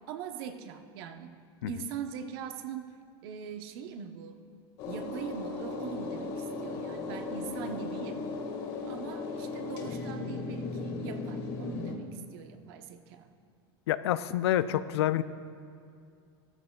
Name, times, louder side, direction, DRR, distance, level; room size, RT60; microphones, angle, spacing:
voice 1, 0.1-1.3 1.7-2.9 3.2-4.4 4.8-8.2 8.9-13.3, right 7 dB, 65° right, 7 dB, 0.9 m, -41 dB
sound 1, 4.8-12.0, left 3 dB, 65° left, 1.8 m, -36 dB
voice 2, 13.9-15.2, left 12 dB, 85° left, 14 dB, 0.4 m, -27 dB
14.0 x 13.0 x 2.3 m, 2.3 s
supercardioid pair, 125°, 13 cm